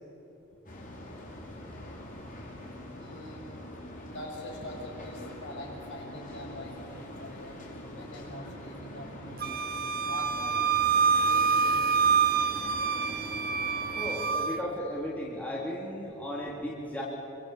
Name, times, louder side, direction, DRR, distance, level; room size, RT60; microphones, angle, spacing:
sound 1, 0.7-14.2, left 1 dB, 40° left, 5.2 m, -43 dB
voice 1, 2.9-3.5 4.0-7.6 7.9-9.6 10.0-10.7 11.2-12.2, left 1 dB, 55° left, -1 dB, 7.6 m, -44 dB
Wind instrument woodwind instrument, 9.4-14.6, right 6 dB, 45° right, 1.1 m, -26 dB
voice 2, 13.9-17.0, equal, 5° left, -5 dB, 3.7 m, -35 dB
27.0 x 25.0 x 8.6 m, 2.9 s
head